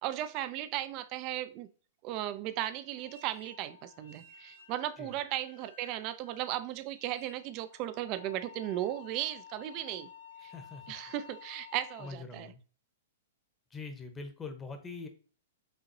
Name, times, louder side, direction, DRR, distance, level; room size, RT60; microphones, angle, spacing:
voice 1, 0.0-1.7 2.0-10.1 10.4-10.5 10.9-12.5, right 13 dB, 40° right, 0.4 m, -36 dB
sound 1, 2.9-12.1, left 7 dB, 70° left, 0.9 m, -53 dB
voice 2, 10.4-11.0 12.0-12.6 13.7-15.1, left 4 dB, 15° left, 0.9 m, -43 dB
5.5 x 2.8 x 2.6 m
figure-of-eight pair, 105°, 0 cm